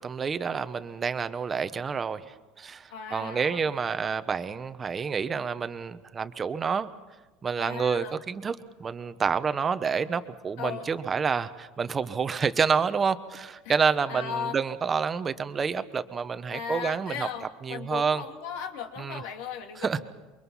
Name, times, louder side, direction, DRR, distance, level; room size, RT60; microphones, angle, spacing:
voice 1, 0.0-6.9 7.4-17.3 17.6-18.2 19.0-19.2 19.8-20.0, right 6 dB, 20° right, 11 dB, 1.0 m, -28 dB
voice 2, 2.9-3.8 7.6-8.2 10.6-10.9 13.6-13.7 14.1-14.6 16.5-20.0, left 7 dB, 75° left, 4 dB, 2.8 m, -37 dB
28.5 x 23.5 x 5.7 m, 1.2 s
supercardioid pair, 140°, 0 cm